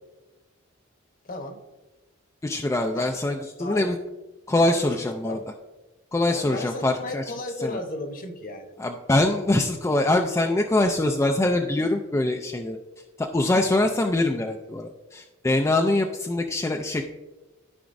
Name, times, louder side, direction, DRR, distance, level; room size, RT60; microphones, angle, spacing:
voice 1, 1.2-1.6 2.9-3.1 3.6-3.9 4.6-5.5 6.3-8.7 13.7-13.9, left 2 dB, 45° left, 5 dB, 1.0 m, -35 dB
voice 2, 2.4-4.0 4.5-5.4 6.1-7.2 7.6-7.8 8.8-12.8 13.2-17.0, left 2 dB, 15° left, 3 dB, 0.4 m, -23 dB
13.5 x 4.9 x 2.6 m, 1.1 s
head